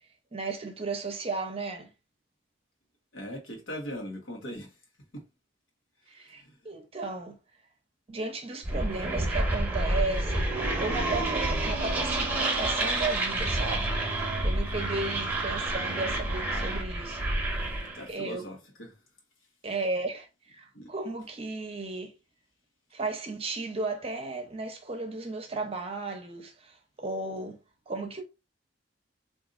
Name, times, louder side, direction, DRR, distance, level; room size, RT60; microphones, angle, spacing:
voice 1, 0.3-1.9 6.1-7.4 8.1-10.5 10.8-13.9 14.4-17.2 18.1-18.5 19.6-22.1 22.9-27.6 27.9-28.2, right 3 dB, 30° right, 0.7 m, -34 dB
voice 2, 3.1-4.7 5.1-5.2 6.2-6.5 17.9-18.9 20.7-20.9, equal, 90° left, 1.1 m, -40 dB
sound 1, 8.6-18.0, right 2 dB, 10° right, 1.0 m, -29 dB
3.9 x 2.6 x 2.4 m
head